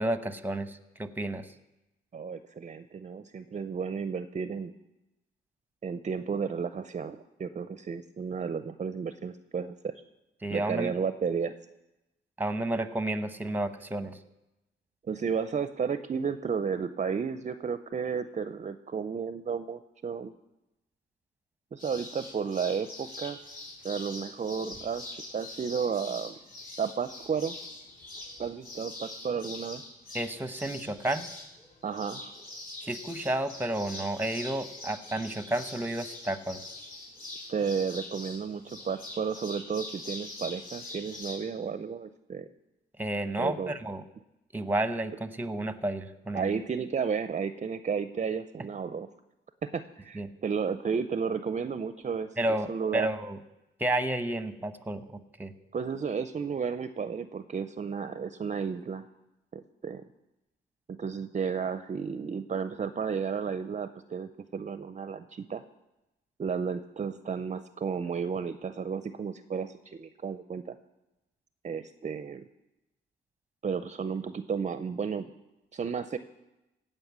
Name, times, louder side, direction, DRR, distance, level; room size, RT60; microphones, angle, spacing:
voice 1, 0.0-1.5 10.4-10.9 12.4-14.2 30.1-31.3 32.8-36.6 43.0-44.0 44.5-46.5 50.1-50.3 52.4-53.4 53.8-55.5, right 1 dB, 10° right, 11 dB, 0.9 m, -31 dB
voice 2, 2.1-4.7 5.8-10.0 10.5-11.5 15.1-20.3 21.7-23.4 23.8-26.4 26.8-27.5 28.4-29.8 31.8-32.3 37.5-42.5 43.4-43.7 46.3-49.1 49.6-52.3 52.7-53.1 55.7-59.1 59.5-60.0 60.9-65.6 66.4-70.8 71.6-72.5 73.6-75.3 75.7-76.2, right 6 dB, 35° right, 11 dB, 0.6 m, -33 dB
sound 1, 21.8-41.4, left 2 dB, 45° left, 4.5 m, -43 dB
16.5 x 5.5 x 8.1 m, 0.95 s
cardioid pair, 85°, 21 cm